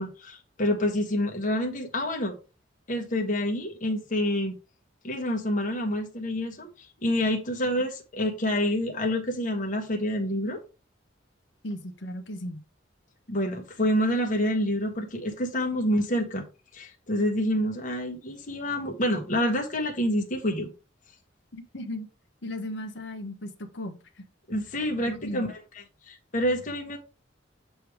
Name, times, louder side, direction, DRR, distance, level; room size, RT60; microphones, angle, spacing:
voice 1, 0.0-2.3 2.9-4.6 5.0-10.6 13.3-16.4 16.7-20.7 24.5-25.6 26.1-27.0, left 1 dB, 45° left, 1.2 m, -27 dB
voice 2, 11.6-12.6 21.5-22.1 22.4-24.2 25.0-25.5, left 1 dB, 65° left, 1.1 m, -36 dB
7.7 x 3.4 x 4.6 m
head